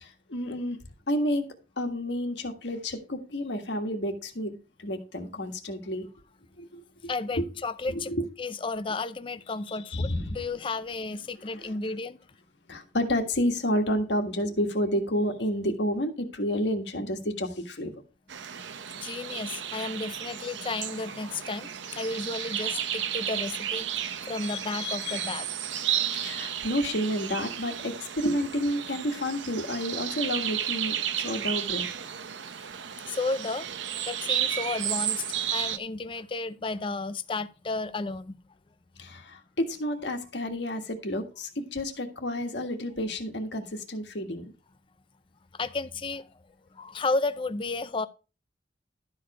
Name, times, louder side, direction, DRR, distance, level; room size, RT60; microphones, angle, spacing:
voice 1, 0.0-0.8 1.1-6.1 6.6-6.8 7.4-7.5 7.9-8.3 9.7-10.3 12.7-18.0 24.4-25.4 26.0-31.9 39.0-44.5, equal, 70° left, 1.6 m, -30 dB
voice 2, 7.1-8.1 8.4-12.2 18.9-25.5 33.1-33.7 34.0-35.2 35.5-38.4 45.5-46.3 46.7-48.1, left 3 dB, 30° left, 0.5 m, -33 dB
sound 1, 18.3-35.8, right 10 dB, 80° right, 0.7 m, -33 dB
12.0 x 5.0 x 4.8 m
head